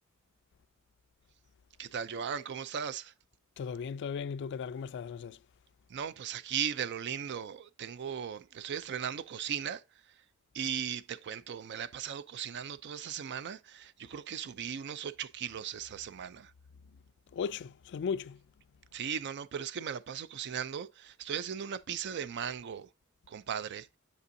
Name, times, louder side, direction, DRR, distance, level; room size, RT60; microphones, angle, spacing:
voice 1, 1.8-3.1 5.9-9.8 10.5-16.5 18.9-22.9 23.3-23.9, right 8 dB, 55° right, 0.4 m, -37 dB
voice 2, 3.6-5.4 17.3-18.4, left 6 dB, 55° left, 0.3 m, -36 dB
6.8 x 5.4 x 2.6 m
head